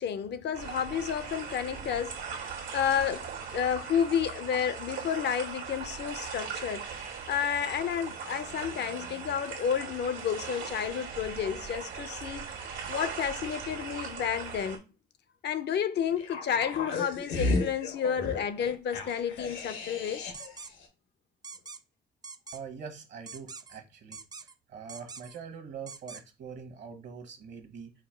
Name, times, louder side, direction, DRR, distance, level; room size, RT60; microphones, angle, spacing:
voice 1, 0.0-2.2 2.7-6.8 7.3-14.8 15.4-20.3, left 8 dB, 60° left, 0.6 m, -31 dB
sound 1, 0.5-14.8, right 6 dB, 90° right, 1.5 m, -39 dB
sound 2, 16.2-20.6 20.8-20.9, left 3 dB, 80° left, 1.1 m, -34 dB
sound 3, 20.3-20.7 21.4-21.8 22.2-22.6 23.3-23.8 24.1-24.5 24.9-25.4 25.9-26.2, right 4 dB, 20° right, 0.3 m, -44 dB
voice 2, 22.5-27.9, right 6 dB, 60° right, 1.0 m, -44 dB
5.0 x 2.1 x 4.4 m
cardioid pair, 90°, 20 cm